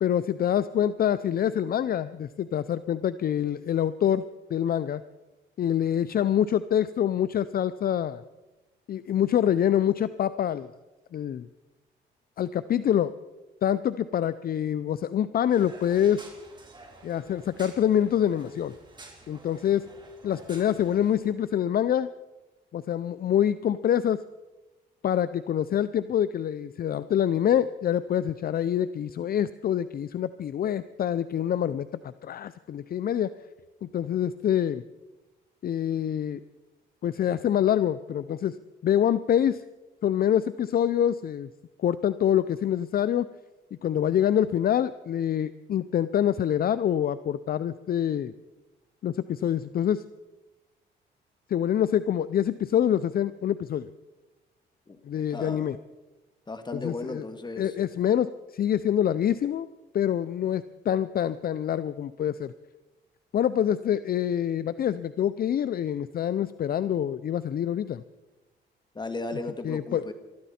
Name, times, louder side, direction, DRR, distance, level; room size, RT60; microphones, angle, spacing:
voice 1, 0.0-4.3 4.5-5.0 5.6-8.2 8.9-10.7 11.1-11.5 12.4-13.1 13.6-16.2 17.0-18.7 19.3-19.9 20.2-22.1 22.7-24.2 25.0-31.9 32.2-33.3 33.8-34.8 35.6-36.4 37.0-38.6 38.8-39.6 40.0-41.5 41.8-43.3 43.8-48.3 49.0-50.0 51.5-53.9 55.1-55.8 56.8-57.2 57.6-59.7 59.9-62.5 63.3-68.0 69.6-70.0, left 10 dB, 50° left, 15 dB, 0.5 m, -26 dB
sound 1, 15.5-21.3, right 2 dB, 25° right, 3.5 m, -50 dB
voice 2, 54.9-55.7 56.5-57.7 68.9-70.1, left 2 dB, 20° left, 8 dB, 1.8 m, -36 dB
23.0 x 13.0 x 4.3 m, 1.1 s
cardioid pair, 90°, 20 cm